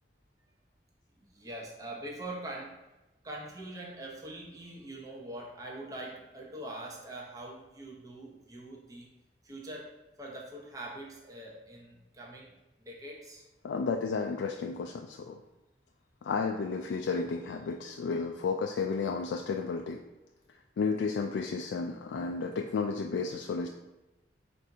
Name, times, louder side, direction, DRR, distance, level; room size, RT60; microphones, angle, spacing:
voice 1, 1.3-2.8 3.2-9.1 9.4-13.4, right 1 dB, 20° right, -2 dB, 0.7 m, -43 dB
voice 2, 13.6-15.4 16.2-20.0 20.8-23.7, left 4 dB, 85° left, 3 dB, 0.3 m, -32 dB
4.2 x 2.6 x 4.6 m, 1.0 s
head